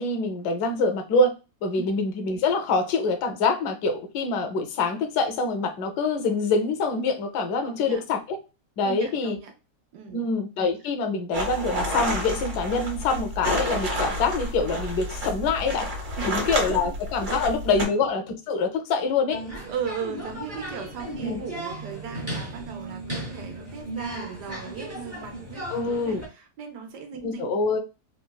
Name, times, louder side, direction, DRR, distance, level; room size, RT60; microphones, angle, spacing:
voice 1, 0.0-1.3 1.6-8.4 8.8-9.4 10.1-15.9 16.2-19.4 21.2-21.4 25.7-26.2 27.2-27.8, left 3 dB, 75° left, 1.1 m, -25 dB
voice 2, 7.6-8.0 8.8-9.5 9.9-10.2 16.2-16.8 17.3-17.4 17.8-18.0 19.7-27.5, right 7 dB, 75° right, 1.3 m, -37 dB
sound 1, 11.3-17.9, equal, 50° right, 1.3 m, -30 dB
sound 2, 19.3-26.3, right 1 dB, 20° right, 0.4 m, -36 dB
3.8 x 2.3 x 2.2 m
omnidirectional pair, 1.8 m